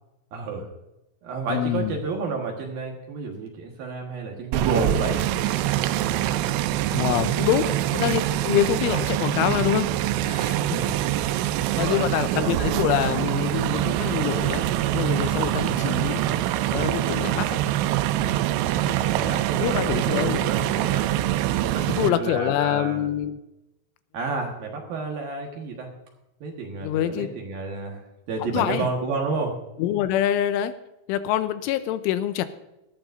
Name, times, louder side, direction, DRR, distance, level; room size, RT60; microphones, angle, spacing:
voice 1, 0.3-0.7 1.2-5.2 6.9-7.7 10.7-11.0 11.7-12.1 12.4-12.6 15.4-15.7 19.1-21.1 21.6-23.1 24.1-25.9 26.4-29.6, right 4 dB, 60° right, 1 dB, 2.6 m, -31 dB
voice 2, 1.5-2.0 6.9-9.9 10.2-10.8 11.8-14.6 14.9-16.2 16.7-17.6 19.6-20.5 21.9-23.4 26.8-27.3 28.4-28.9 29.8-30.7 31.1-32.5, left 11 dB, 90° left, 11 dB, 3.1 m, -25 dB
sound 1, 4.5-22.1, right 13 dB, 85° right, 3.0 m, -24 dB
18.0 x 13.5 x 2.6 m, 0.94 s
omnidirectional pair, 5.6 m